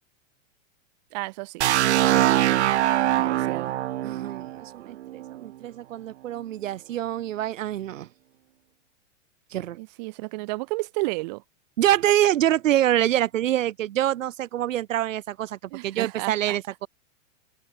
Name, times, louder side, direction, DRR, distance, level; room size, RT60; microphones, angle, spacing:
voice 1, 1.1-1.6 3.1-3.7 9.7-11.4 15.7-16.6, right 25 dB, 35° right, 4.1 m, -33 dB
sound 1, 1.6-5.4, right 13 dB, 60° right, 1.2 m, -23 dB
voice 2, 4.0-8.1 9.5-9.8 11.8-16.9, right 12 dB, 90° right, 1.4 m, -25 dB
open air
supercardioid pair, 175°, 37 cm